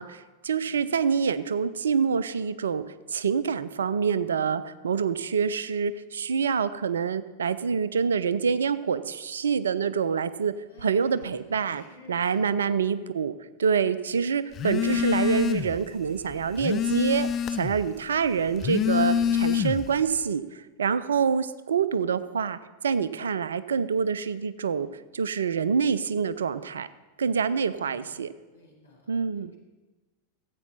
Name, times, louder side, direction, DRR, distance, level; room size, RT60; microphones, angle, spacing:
voice 1, 0.0-10.5 10.8-13.3 13.6-17.3 17.6-22.6 22.8-26.9 27.2-28.3 29.1-29.5, right 6 dB, 65° right, 15 dB, 0.4 m, -26 dB
voice 2, 10.7-12.7 27.7-28.2 28.5-29.1, left 2 dB, 80° left, -3 dB, 2.5 m, -53 dB
Telephone, 14.6-15.8 16.2-17.9 18.5-20.0, left 8 dB, 30° left, 0.4 m, -26 dB
14.0 x 8.3 x 4.2 m, 1.2 s
figure-of-eight pair, 90°, 0 cm